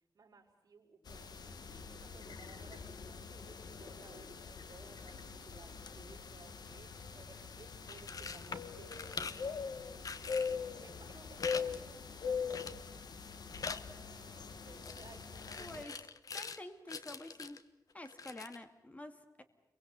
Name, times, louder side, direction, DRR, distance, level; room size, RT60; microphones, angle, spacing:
voice 1, 0.1-1.4 1.7-12.7 13.9-16.0, right 4 dB, 55° right, -6 dB, 5.5 m, -59 dB
sound 1, 1.1-15.8, left 5 dB, 75° left, 1.6 m, -43 dB
sound 2, 7.7-8.5 8.9-9.5 10.0-10.6 11.4-11.7 11.9-12.0 12.5-12.9 13.2-13.9 14.8-16.6 16.9-17.6 18.1-18.6, left 5 dB, 60° left, 1.2 m, -44 dB
voice 2, 15.6-15.9 16.3-17.6 17.9-19.4, left 1 dB, 20° left, 8 dB, 2.2 m, -48 dB
30.0 x 23.5 x 8.2 m, 0.84 s
wide cardioid pair, 150°, 7 cm